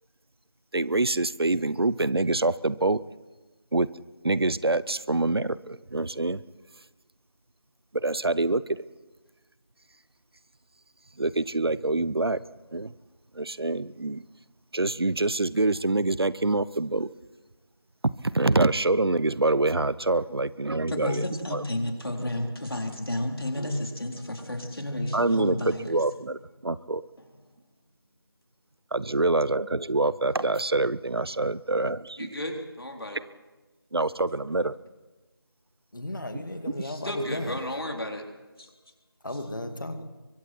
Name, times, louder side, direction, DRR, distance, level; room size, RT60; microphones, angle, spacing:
voice 1, 0.7-3.0 3.7-3.9 4.2-6.4 7.9-8.9 11.2-12.4 12.7-12.9 13.3-14.2 14.7-17.1 18.0-21.2 25.1-27.0 28.9-32.2 33.9-34.7, right 2 dB, 85° right, 0.7 m, -25 dB
voice 2, 20.9-26.0 27.2-27.9 29.2-29.3 31.8-31.9 32.2-33.2 34.3-34.7 36.4-38.3 38.6-39.0 39.3-39.4, left 1 dB, 75° left, 3.7 m, -33 dB
voice 3, 35.9-37.5 39.2-40.0, left 1 dB, 55° left, 2.3 m, -34 dB
26.5 x 23.5 x 4.5 m
figure-of-eight pair, 175°, 13 cm